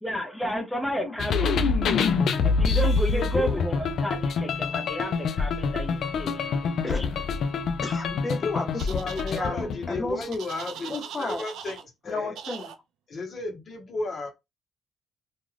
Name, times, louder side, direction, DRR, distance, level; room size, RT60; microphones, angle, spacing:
voice 1, 0.0-2.1 2.4-6.7, equal, 5° left, 0.7 m, -32 dB
voice 2, 1.0-1.4 3.1-3.7 4.7-4.9 6.8-7.2 7.8-10.4 10.9-11.4 12.1-12.7, left 3 dB, 25° left, 1.0 m, -33 dB
sound 1, 1.2-10.3, left 4 dB, 70° left, 0.4 m, -26 dB
sound 2, 8.8-9.4 10.3-11.8 12.4-12.8, right 8 dB, 80° right, 0.3 m, -40 dB
voice 3, 8.9-10.9 11.2-12.4 13.1-14.3, left 3 dB, 50° left, 1.0 m, -33 dB
2.5 x 2.3 x 3.2 m
cardioid pair, 90°, 0 cm